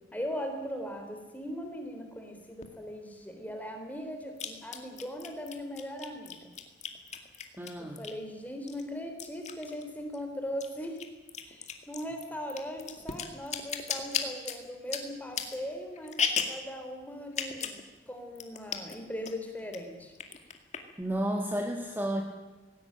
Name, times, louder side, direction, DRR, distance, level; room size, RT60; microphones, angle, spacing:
voice 1, 0.1-6.4 7.8-11.0 11.5-20.1, equal, 10° left, 4 dB, 3.7 m, -39 dB
sound 1, 2.6-2.7 4.4-8.3 8.7-10.2 10.5-16.7 17.3-17.8 18.1-18.2 18.4-19.0 19.3-19.8 20.1-21.0, left 6 dB, 35° left, 2.2 m, -35 dB
voice 2, 7.6-8.0 21.0-22.2, right 1 dB, 10° right, 2 dB, 1.7 m, -31 dB
19.0 x 17.5 x 9.0 m, 1.2 s
head